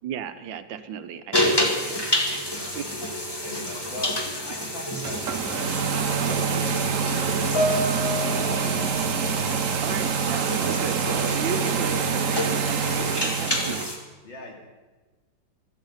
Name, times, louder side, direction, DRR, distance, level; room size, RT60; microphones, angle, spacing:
voice 1, 0.0-2.4 2.7-2.9 9.8-13.9, right 8 dB, 80° right, 10 dB, 1.6 m, -35 dB
sound 1, 1.3-14.0, left 1 dB, 15° left, 1.8 m, -29 dB
voice 2, 3.4-8.7 14.2-14.6, left 2 dB, 85° left, 0 dB, 3.4 m, -41 dB
sound 2, 4.9-13.9, right 6 dB, 55° right, 1.0 m, -26 dB
Piano, 7.5-10.2 10.4-10.8 11.6-11.7, left 1 dB, 50° left, 2.8 m, -30 dB
15.0 x 13.0 x 5.6 m, 1.2 s
omnidirectional pair, 2.0 m